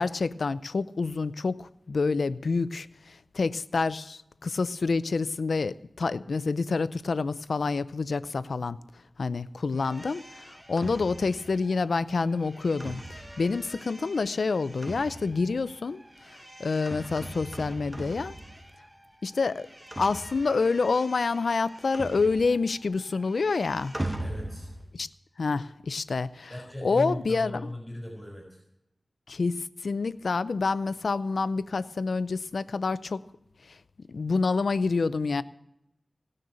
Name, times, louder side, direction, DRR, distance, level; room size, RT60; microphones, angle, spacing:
voice 1, 0.0-8.8 9.2-16.0 16.6-18.4 19.2-19.7 20.0-23.9 24.9-25.1 25.4-26.5 26.8-27.6 29.3-33.2 34.1-35.4, left 4 dB, 85° left, 16 dB, 0.5 m, -28 dB
sound 1, 9.8-19.0 19.3-22.8 23.0-24.9, right 1 dB, 20° right, 1.3 m, -41 dB
voice 2, 24.2-24.7 26.5-28.6, equal, 10° left, 1 dB, 4.5 m, -37 dB
18.0 x 6.6 x 8.8 m, 0.85 s
cardioid pair, 45°, 0 cm